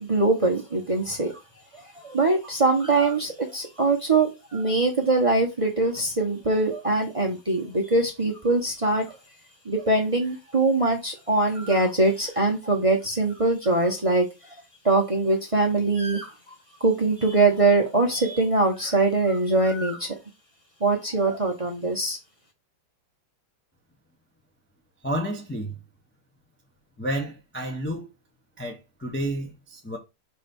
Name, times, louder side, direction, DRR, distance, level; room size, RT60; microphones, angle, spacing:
voice 1, 0.0-1.3 1.9-9.2 9.6-14.3 14.8-20.1 20.8-22.2, right 2 dB, 25° right, 0.8 m, -23 dB
voice 2, 25.0-25.8 27.0-28.1 28.6-30.0, right 1 dB, 15° left, 0.5 m, -30 dB
5.3 x 3.4 x 5.3 m
omnidirectional pair, 2.3 m